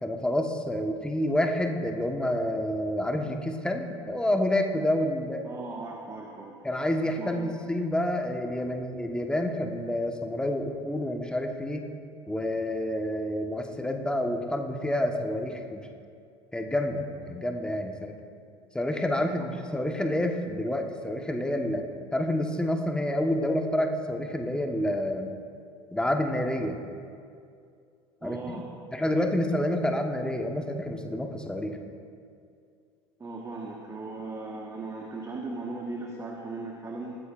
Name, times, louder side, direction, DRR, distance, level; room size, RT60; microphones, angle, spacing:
voice 1, 0.0-5.5 6.6-11.9 12.3-15.9 16.5-18.1 18.7-21.8 22.1-25.3 25.9-26.8 28.2-28.6 28.9-31.8, left 1 dB, 5° left, 4 dB, 1.4 m, -28 dB
voice 2, 5.4-6.5 7.0-7.4 28.2-28.7 33.2-37.1, right 3 dB, 20° right, -1 dB, 1.5 m, -37 dB
20.0 x 14.0 x 2.6 m, 2.4 s
figure-of-eight pair, 65°, 14 cm